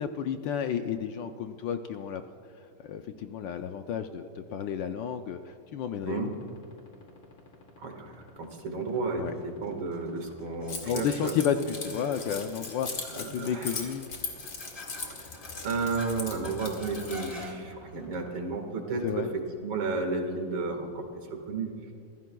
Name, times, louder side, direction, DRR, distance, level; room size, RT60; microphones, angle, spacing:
voice 1, 0.0-2.2 2.8-6.3 9.2-9.3 10.9-14.0 19.0-19.3, left 8 dB, 70° left, 7 dB, 1.2 m, -32 dB
sound 1, 6.0-18.3, left 4 dB, 85° left, 3.1 m, -52 dB
voice 2, 7.8-11.3 13.1-13.9 15.2-15.3 15.6-21.7, right 3 dB, 70° right, 3 dB, 2.5 m, -33 dB
sound 2, 8.9-20.2, left 2 dB, 20° left, 1.4 m, -48 dB
Keys jangling, 10.7-17.4, left 4 dB, 45° left, 2.1 m, -39 dB
26.5 x 15.5 x 2.3 m, 2.5 s
omnidirectional pair, 2.4 m